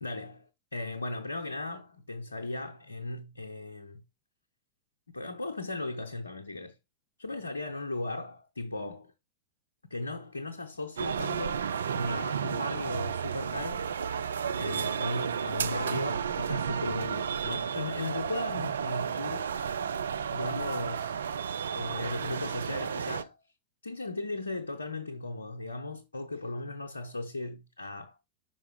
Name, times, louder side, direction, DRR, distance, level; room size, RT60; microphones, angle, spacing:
voice 1, 0.0-4.0 5.1-6.8 7.2-9.1 9.9-11.7 12.0-13.9 14.6-19.5 20.3-21.1 21.7-23.4 23.8-28.2, left 2 dB, 80° left, 0.6 m, -37 dB
sound 1, 11.0-23.2, right 7 dB, 70° right, 0.3 m, -32 dB
5.7 x 4.4 x 4.7 m
figure-of-eight pair, 90°, 0 cm